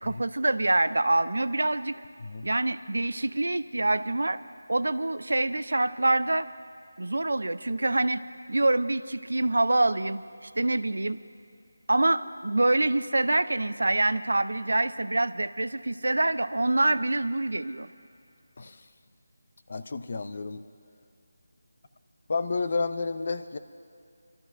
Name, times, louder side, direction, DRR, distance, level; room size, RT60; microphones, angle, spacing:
voice 1, 0.0-2.0 2.4-4.4 4.7-6.5 7.0-8.2 8.5-11.2 11.9-17.9, right 2 dB, 85° right, 14 dB, 0.5 m, -26 dB
voice 2, 19.7-20.6 22.3-23.6, left 4 dB, 45° left, 11 dB, 0.5 m, -31 dB
27.5 x 13.5 x 2.6 m, 2.4 s
figure-of-eight pair, 170°, 0 cm